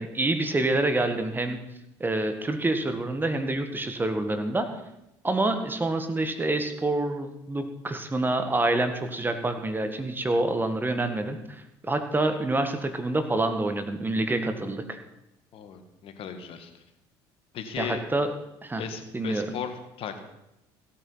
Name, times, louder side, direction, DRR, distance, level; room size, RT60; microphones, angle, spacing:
voice 1, 0.0-1.6 2.0-4.7 5.2-15.0 17.8-18.3 18.6-18.8 19.1-19.5, right 2 dB, 20° right, 7 dB, 1.7 m, -27 dB
voice 2, 15.5-16.8 17.5-18.0 18.8-20.2, left 8 dB, 60° left, 8 dB, 1.8 m, -36 dB
16.5 x 8.8 x 5.7 m, 0.88 s
supercardioid pair, 80°, 11 cm